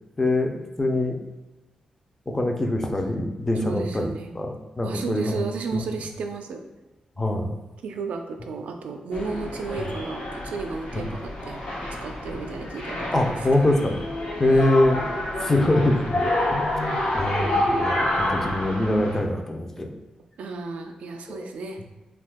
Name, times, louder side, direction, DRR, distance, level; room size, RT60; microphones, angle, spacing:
voice 1, 0.2-1.2 2.3-5.4 5.7-5.8 7.2-7.6 10.9-11.1 13.1-14.0 14.4-15.0 15.4-16.2 16.5-19.9 21.3-21.5, left 1 dB, 15° left, 3 dB, 0.4 m, -24 dB
voice 2, 3.5-4.3 4.8-6.6 7.8-11.7 12.0-13.5 14.4-14.7 20.4-21.8, right 4 dB, 85° right, 4 dB, 0.3 m, -33 dB
sound 1, 9.1-19.2, left 1 dB, 85° left, 0.9 m, -28 dB
2.6 x 2.3 x 3.4 m, 1.1 s
wide cardioid pair, 110°, 2 cm